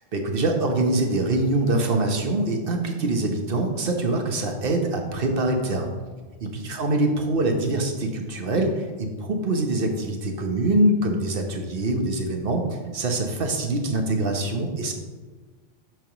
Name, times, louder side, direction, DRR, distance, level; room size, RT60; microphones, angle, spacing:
voice 1, 0.1-5.9 6.4-14.9, right 2 dB, 50° right, 3 dB, 1.1 m, -24 dB
9.1 x 3.5 x 5.8 m, 1.4 s
omnidirectional pair, 1.3 m